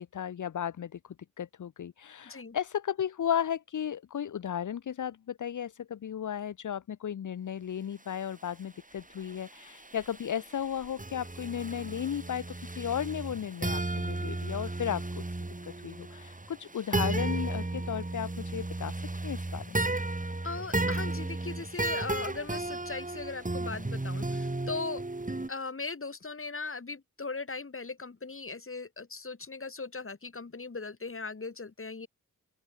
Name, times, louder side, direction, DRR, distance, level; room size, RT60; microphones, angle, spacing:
voice 1, 0.0-15.2 15.6-19.0 19.2-19.8, left 9 dB, 65° left, 1.0 m, -35 dB
voice 2, 2.2-2.6 20.4-25.0 25.5-32.1, left 4 dB, 40° left, 3.1 m, -39 dB
sound 1, 9.2-25.5, right 2 dB, 25° right, 4.0 m, -34 dB
open air
supercardioid pair, 40°, 33 cm